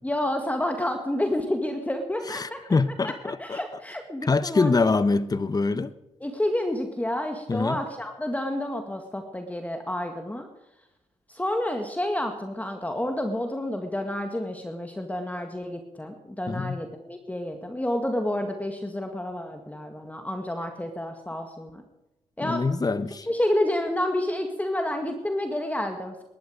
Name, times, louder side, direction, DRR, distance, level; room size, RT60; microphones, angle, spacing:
voice 1, 0.0-2.6 3.0-3.1 3.4-4.9 6.2-10.5 11.3-21.8 22.4-22.6 23.2-26.2, left 1 dB, 10° left, 5 dB, 1.9 m, -29 dB
voice 2, 2.3-3.6 4.2-5.9 7.5-7.8 16.5-16.8 22.4-23.3, left 3 dB, 30° left, 14 dB, 1.0 m, -24 dB
20.5 x 11.0 x 5.1 m, 0.92 s
cardioid pair, 75°, 13 cm